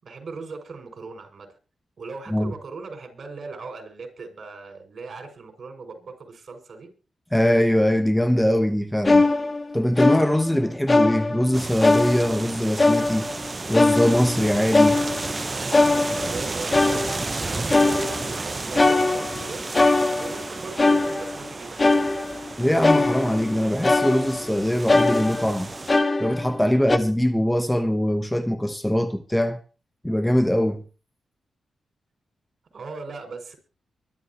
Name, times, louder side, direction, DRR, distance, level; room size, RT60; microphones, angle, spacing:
voice 1, 0.0-1.5 2.0-6.9 15.5-19.6 20.2-22.0 32.7-33.6, right 4 dB, 55° right, 6.5 m, -38 dB
voice 2, 7.3-9.2 9.7-13.3 13.7-15.0 22.6-25.7 26.2-29.6 30.0-30.8, equal, 5° left, 1.1 m, -22 dB
sound 1, 9.0-10.5 10.9-11.6 11.8-12.5 12.8-13.4 13.7-15.4 15.7-16.4 16.7-17.4 17.7-18.4 18.7-20.5 20.8-21.5 21.8-22.5 22.8-23.6 23.8-24.5 24.9-26.6 26.9-27.0, left 2 dB, 30° left, 1.7 m, -21 dB
sound 2, 11.5-25.9, right 3 dB, 30° right, 0.7 m, -33 dB
24.0 x 12.5 x 3.1 m
cardioid pair, 80°, 0 cm